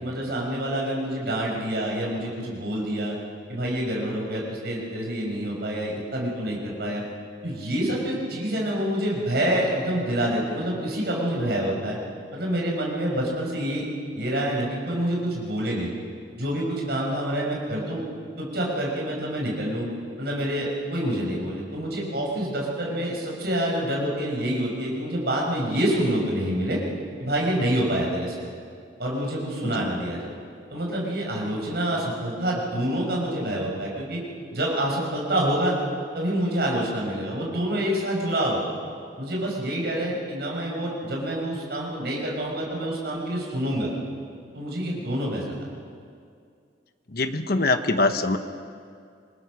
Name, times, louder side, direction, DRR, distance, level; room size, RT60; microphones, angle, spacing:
voice 1, 0.0-3.1 3.5-7.0 7.4-12.0 12.3-13.8 14.2-15.9 16.4-18.0 18.4-19.9 20.2-26.8 27.2-28.4 29.0-30.2 30.7-34.2 34.5-35.8 36.1-38.6 39.2-43.9 44.5-45.4, right 1 dB, 60° right, -2 dB, 6.3 m, -27 dB
voice 2, 47.1-48.4, left 2 dB, 55° left, 8 dB, 1.2 m, -23 dB
27.0 x 20.5 x 6.4 m, 2.3 s
head